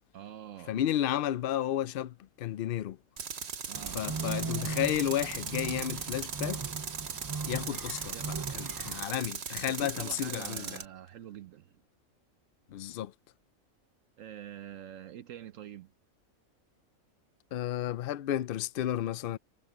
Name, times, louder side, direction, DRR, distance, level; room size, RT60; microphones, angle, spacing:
voice 1, 0.1-0.8 3.7-4.1 8.1-8.4 9.2-11.8 14.2-15.9, right 11 dB, 70° right, 1.0 m, -46 dB
voice 2, 0.7-3.0 3.9-6.6 7.5-8.2 8.5-10.8 12.7-13.1 17.5-19.4, left 11 dB, 70° left, 0.5 m, -32 dB
Tools, 3.2-10.9, right 6 dB, 50° right, 1.3 m, -39 dB
sound 1, 3.7-9.0, right 4 dB, 35° right, 0.3 m, -38 dB
sound 2, 3.9-7.9, right 1 dB, 15° left, 6.7 m, -64 dB
omnidirectional pair, 1.5 m